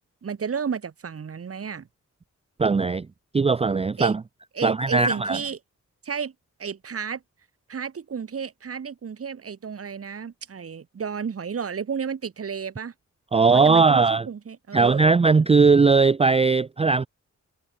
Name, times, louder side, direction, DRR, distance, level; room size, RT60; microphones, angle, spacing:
voice 1, 0.2-1.9 4.0-4.1 4.5-5.6 6.0-6.3 6.6-7.2 7.7-12.9 13.5-15.1, right 6 dB, 50° right, 1.7 m, -32 dB
voice 2, 2.6-3.1 3.3-4.2 4.6-5.4 13.3-14.3 14.7-17.1, right 4 dB, 20° right, 0.4 m, -19 dB
wide cardioid pair, 165°, 31 cm